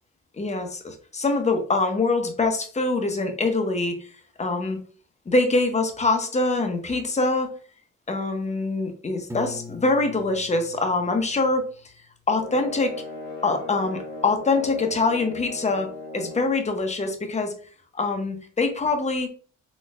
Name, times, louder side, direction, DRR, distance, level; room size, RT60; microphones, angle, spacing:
voice 1, 0.4-4.1 4.4-4.8 5.3-7.5 8.1-11.6 12.3-12.9 13.4-17.5 17.9-19.3, left 3 dB, 25° left, 6 dB, 0.8 m, -24 dB
Piano, 9.3-12.2, left 3 dB, 10° right, 0.6 m, -42 dB
sound 1, 12.3-16.6, left 3 dB, 85° left, 1.6 m, -37 dB
4.1 x 3.0 x 2.4 m, 0.43 s
cardioid pair, 90°, 30 cm